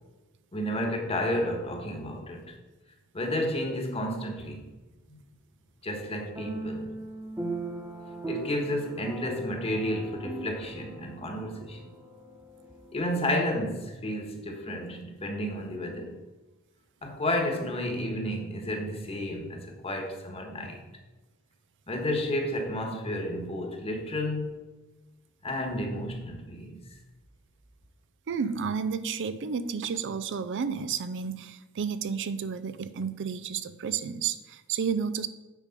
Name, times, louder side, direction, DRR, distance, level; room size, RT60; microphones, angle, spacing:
voice 1, 0.5-2.5 3.1-4.7 5.1-5.2 5.8-7.0 8.3-11.8 12.9-16.2 17.0-20.8 21.9-24.6 25.4-26.7, left 1 dB, 30° left, 1.4 m, -31 dB
sound 1, 4.4-4.8 6.4-13.1, right 3 dB, 10° right, 1.1 m, -39 dB
voice 2, 28.3-35.3, right 6 dB, 60° right, 0.4 m, -31 dB
8.4 x 5.2 x 5.2 m
head